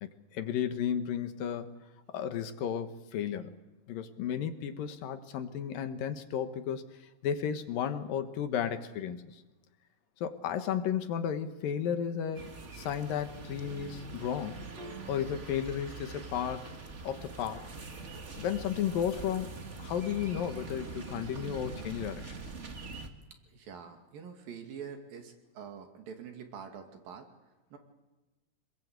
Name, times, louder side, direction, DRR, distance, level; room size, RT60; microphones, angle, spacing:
voice 1, 0.0-1.7 2.1-3.6 3.9-6.8 7.2-9.4 10.2-14.6 15.1-16.7 17.0-17.7 18.4-22.3, left 9 dB, 80° left, 9 dB, 3.1 m, -33 dB
sound 1, 12.3-23.1, right 3 dB, 35° right, 1.2 m, -44 dB
Piano, 14.8-21.7, equal, 65° right, 4.3 m, -58 dB
voice 2, 23.5-27.3 27.7-27.8, right 7 dB, 80° right, 4 dB, 4.2 m, -45 dB
26.5 x 21.0 x 8.2 m, 1.1 s
omnidirectional pair, 4.0 m